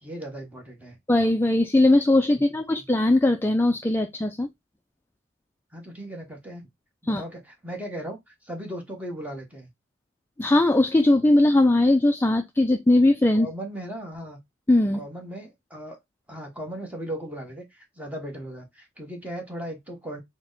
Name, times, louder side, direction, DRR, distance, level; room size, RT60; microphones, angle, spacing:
voice 1, 0.0-1.0 2.5-2.9 5.7-6.7 7.0-9.7 13.3-14.4 14.9-16.0 16.3-20.2, right 1 dB, 10° right, 1.0 m, -37 dB
voice 2, 1.1-4.5 7.1-7.2 10.4-13.5 14.7-15.0, left 1 dB, 10° left, 0.3 m, -20 dB
4.4 x 2.1 x 3.8 m
head